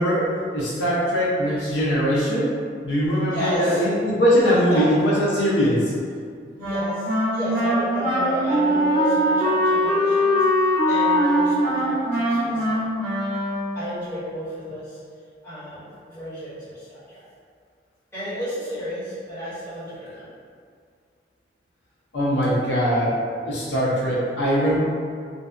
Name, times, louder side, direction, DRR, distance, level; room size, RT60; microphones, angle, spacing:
voice 1, 0.0-2.5 2.8-5.9 22.1-23.1 23.4-24.8, equal, 75° left, -7 dB, 0.5 m, -21 dB
voice 2, 3.3-3.8 4.7-4.9 6.6-12.9 13.7-15.0 15.4-17.2 18.1-20.3 23.9-24.1, equal, 15° left, -14 dB, 1.1 m, -32 dB
Wind instrument woodwind instrument, 6.6-13.9, equal, 55° right, 0.6 m, -22 dB
2.6 x 2.1 x 2.3 m, 2.2 s
head